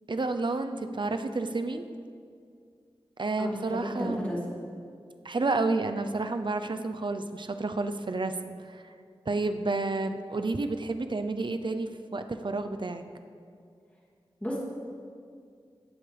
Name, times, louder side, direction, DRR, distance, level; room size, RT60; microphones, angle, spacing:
voice 1, 0.1-1.8 3.2-4.3 5.2-8.3 8.6-8.8 9.3-13.0, right 3 dB, 50° right, 8 dB, 0.7 m, -30 dB
voice 2, 3.4-4.4 14.4-14.6, equal, 15° left, -6 dB, 2.9 m, -33 dB
18.5 x 8.3 x 3.4 m, 2.3 s
wide cardioid pair, 50°, 10 cm